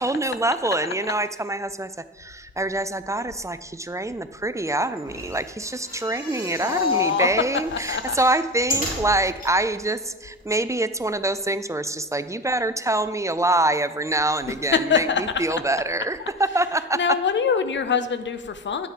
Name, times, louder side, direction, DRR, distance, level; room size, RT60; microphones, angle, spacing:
voice 1, 0.0-1.9 2.2-17.0, right 2 dB, 15° right, 12 dB, 0.5 m, -25 dB
sound 1, 5.0-7.2 7.6-9.5 10.1-10.2 10.4-10.5, equal, 45° left, 3.2 m, -33 dB
voice 2, 6.6-7.3 7.7-8.2 14.9-15.2 16.9-18.9, left 6 dB, 65° left, 11 dB, 0.7 m, -23 dB
9.3 x 6.4 x 4.9 m, 1.2 s
cardioid pair, 60°, 20 cm